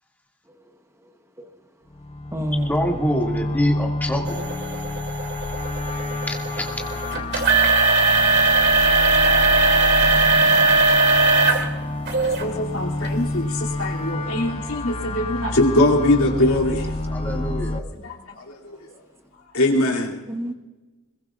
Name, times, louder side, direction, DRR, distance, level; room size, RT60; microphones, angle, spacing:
voice 1, 1.0-1.5 2.3-2.8 16.1-16.5 20.3-20.5, equal, 10° right, 1.0 m, -29 dB
sound 1, 1.9-17.8, left 2 dB, 25° left, 0.7 m, -29 dB
voice 2, 2.7-4.5 6.3-6.7 8.9-14.5 17.1-17.9, equal, 10° left, 2.2 m, -30 dB
sound 2, 4.3-11.7 12.1-12.4 13.0-13.1 13.8-13.9, right 3 dB, 50° right, 2.6 m, -19 dB
voice 3, 12.4-16.9 17.9-18.9 19.5-20.2, left 1 dB, 70° left, 2.7 m, -22 dB
25.0 x 22.0 x 2.4 m
head